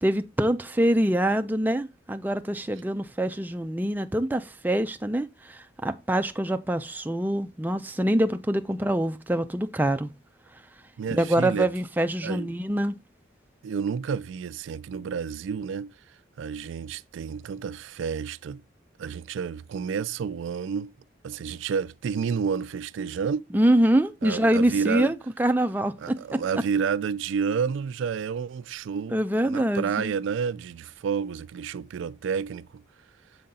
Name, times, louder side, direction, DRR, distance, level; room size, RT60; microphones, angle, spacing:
voice 1, 0.0-10.1 11.1-12.9 23.5-26.4 29.1-30.1, right 1 dB, 10° right, 0.4 m, -25 dB
voice 2, 11.0-11.7 12.2-12.5 13.6-15.9 16.4-18.6 19.0-20.9 21.2-23.4 24.2-25.1 26.0-29.2 29.5-32.8, right 6 dB, 80° right, 0.3 m, -30 dB
7.7 x 3.8 x 4.1 m
head